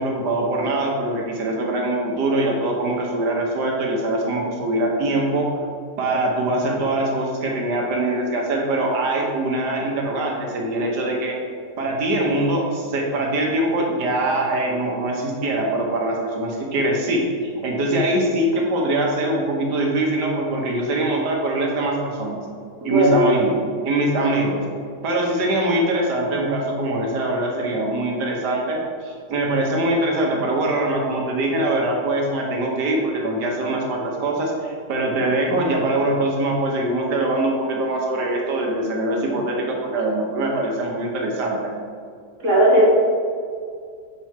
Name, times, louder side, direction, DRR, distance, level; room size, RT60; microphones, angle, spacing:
voice 1, 0.0-5.5 6.0-11.4 11.8-22.4 22.8-23.6 23.8-24.6 25.0-41.6, right 1 dB, 70° right, -1 dB, 1.6 m, -23 dB
voice 2, 22.9-23.2 42.4-43.0, right 1 dB, 45° right, -6 dB, 1.9 m, -15 dB
6.1 x 4.5 x 4.6 m, 2.2 s
omnidirectional pair, 2.0 m